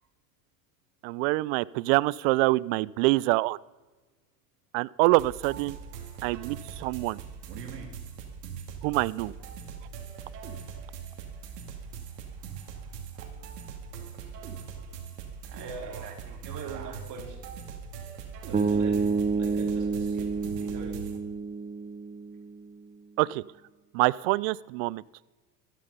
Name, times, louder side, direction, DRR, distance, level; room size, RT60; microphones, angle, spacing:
voice 1, 1.0-3.6 4.7-5.8 6.2-7.2 8.8-9.3 23.2-23.4 23.9-25.0, right 21 dB, 55° right, 22 dB, 0.5 m, -25 dB
sound 1, 5.2-21.2, right 6 dB, 80° right, 2.5 m, -41 dB
voice 2, 15.5-16.2 16.4-17.4 18.5-20.3 20.6-21.1, right 4 dB, 40° right, 1 dB, 4.2 m, -42 dB
sound 2, 18.5-22.7, right 4 dB, 15° right, 1.0 m, -29 dB
13.5 x 13.0 x 5.5 m, 1.2 s
hypercardioid pair, 95°, 48 cm